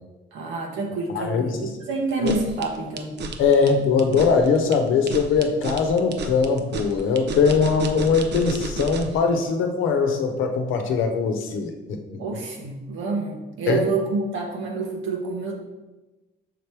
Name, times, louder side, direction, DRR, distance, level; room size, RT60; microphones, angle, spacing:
voice 1, 0.3-3.1 12.2-15.5, right 3 dB, 85° right, -1 dB, 1.4 m, -28 dB
voice 2, 1.1-1.6 2.2-2.4 3.4-12.0 13.7-13.8, left 5 dB, 80° left, 5 dB, 0.8 m, -21 dB
sound 1, 2.1-9.2, right 3 dB, 60° right, 0.6 m, -32 dB
6.5 x 3.3 x 4.6 m, 1.1 s
cardioid pair, 90°, 20 cm